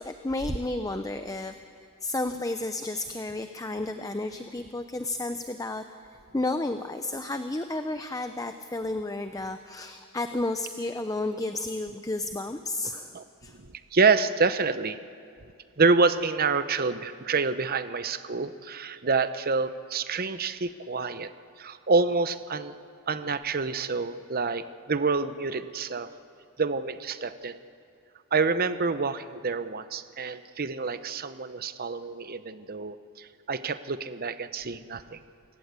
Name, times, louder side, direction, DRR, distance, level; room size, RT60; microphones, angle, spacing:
voice 1, 0.0-1.5 2.0-5.8 6.3-13.1 13.4-13.5, left 2 dB, 15° left, 8 dB, 0.6 m, -32 dB
voice 2, 13.5-15.0 15.8-21.3 21.6-22.8 23.1-26.1 26.6-27.6 28.3-35.2, right 4 dB, 40° right, 12 dB, 0.8 m, -27 dB
29.0 x 17.5 x 8.2 m, 2.4 s
head